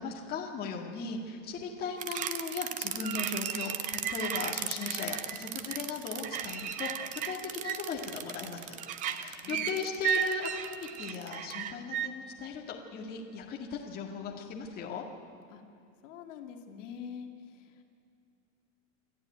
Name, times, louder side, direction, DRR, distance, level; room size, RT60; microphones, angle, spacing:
voice 1, 0.0-6.9 7.2-8.8 9.1-15.0, left 5 dB, 25° left, 0 dB, 2.0 m, -38 dB
sound 1, 2.0-12.1, right 9 dB, 20° right, 0.6 m, -34 dB
voice 2, 16.0-17.9, left 7 dB, 65° left, 4 dB, 2.2 m, -45 dB
28.5 x 12.5 x 9.3 m, 2.5 s
supercardioid pair, 160°, 40 cm